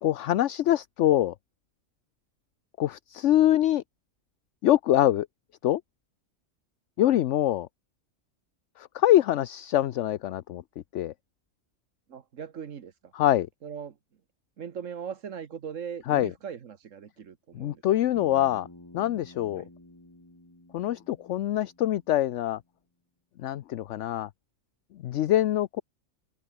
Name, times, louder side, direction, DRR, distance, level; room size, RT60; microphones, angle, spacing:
voice 1, 0.0-1.3 2.8-3.8 4.6-5.3 5.6-5.8 7.0-7.7 8.8-10.6 10.9-11.1 13.1-13.5 16.1-16.3 17.5-18.7 18.9-19.6 20.7-22.6 23.4-24.3 25.0-25.8, left 13 dB, 70° left, 0.9 m, -24 dB
voice 2, 12.1-13.1 13.6-14.0 14.6-17.8 19.5-19.7, right 7 dB, 70° right, 1.6 m, -40 dB
Bass guitar, 18.1-22.4, left 1 dB, 15° left, 2.5 m, -51 dB
open air
omnidirectional pair, 1.4 m